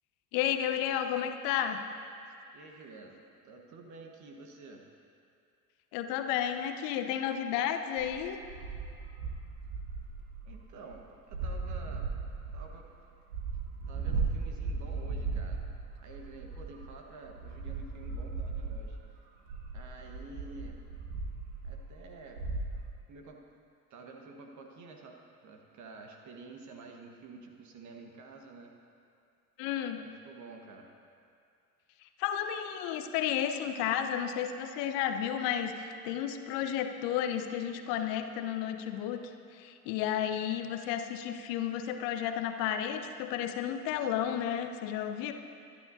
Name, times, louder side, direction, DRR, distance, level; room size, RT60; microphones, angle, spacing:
voice 1, 0.3-1.8 5.9-8.4 29.6-30.0 32.0-45.3, left 9 dB, 50° left, 7 dB, 1.0 m, -32 dB
voice 2, 2.5-4.8 10.4-12.1 12.5-12.9 13.9-15.6 16.0-19.0 19.7-20.8 21.6-22.4 23.1-23.4 23.9-28.7 29.9-30.9, right 3 dB, 40° right, 2 dB, 1.5 m, -49 dB
sound 1, 8.0-10.9 11.3-12.8 13.1-17.0 17.2-19.0 19.5-22.9, right 4 dB, 55° right, 1.5 m, -37 dB
22.5 x 11.5 x 2.8 m, 2.4 s
figure-of-eight pair, 65°, 44 cm